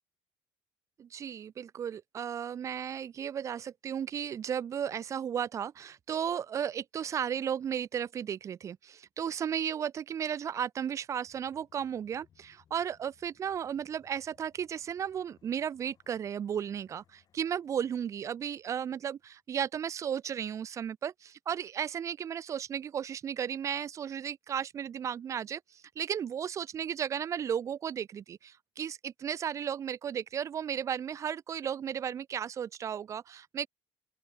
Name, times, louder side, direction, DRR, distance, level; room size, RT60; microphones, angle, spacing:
voice 1, 1.0-33.7, right 8 dB, 30° right, 0.5 m, -34 dB
sound 1, 11.2-19.4, left 9 dB, 40° left, 2.4 m, -69 dB
open air
cardioid pair, 145°, 10 cm